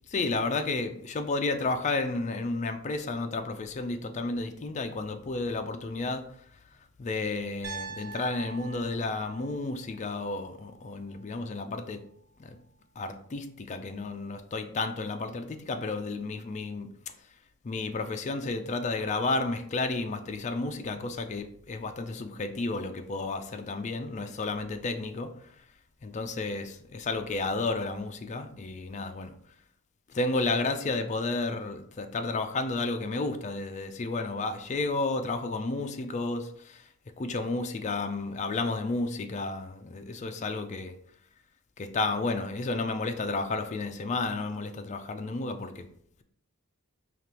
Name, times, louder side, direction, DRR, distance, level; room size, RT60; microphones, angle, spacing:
voice 1, 0.1-6.2 7.0-12.0 12.4-12.6 13.0-16.9 17.6-25.3 26.0-29.3 30.1-36.8 37.2-40.9 41.8-45.8, left 3 dB, 30° left, 7 dB, 0.4 m, -32 dB
Piano, 7.6-11.7, right 5 dB, 45° right, 1.1 m, -44 dB
5.1 x 2.9 x 2.9 m, 0.65 s
head